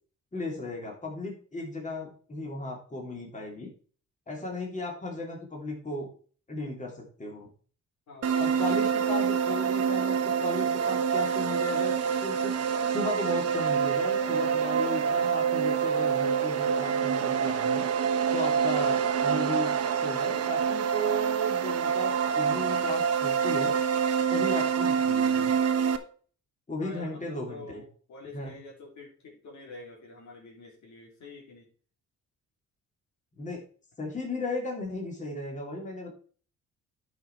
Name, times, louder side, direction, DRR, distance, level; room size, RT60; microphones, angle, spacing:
voice 1, 0.3-3.7 4.3-6.1 6.5-7.5 8.4-12.6 12.8-17.8 18.3-23.8 24.3-25.5 26.7-27.8 28.3-28.5 33.4-33.6 34.0-36.1, left 1 dB, 25° left, 0 dB, 2.9 m, -35 dB
voice 2, 8.1-8.8 12.8-12.9 26.8-31.7, left 3 dB, 70° left, -2 dB, 3.8 m, -47 dB
sound 1, 8.2-26.0, right 7 dB, 55° right, 1.1 m, -26 dB
10.0 x 5.9 x 4.5 m, 0.43 s
cardioid pair, 90°, 30 cm